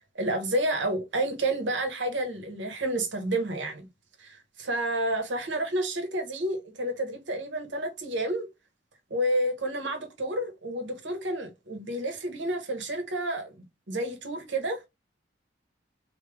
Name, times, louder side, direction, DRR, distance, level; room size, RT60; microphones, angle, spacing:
voice 1, 0.1-3.9 4.2-8.5 9.1-14.9, right 1 dB, 85° right, 1.1 m, -30 dB
3.3 x 2.9 x 3.3 m
head